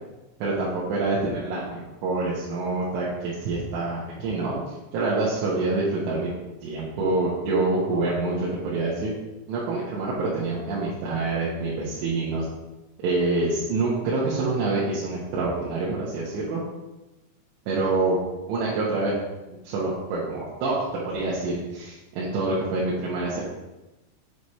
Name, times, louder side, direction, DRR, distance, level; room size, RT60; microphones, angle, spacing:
voice 1, 0.4-6.3 6.6-9.1 9.5-12.5 13.0-16.6 17.7-18.2 18.5-19.2 19.5-23.4, right 3 dB, 75° right, -7 dB, 2.8 m, -26 dB
7.9 x 3.3 x 4.2 m, 1.0 s
omnidirectional pair, 5.9 m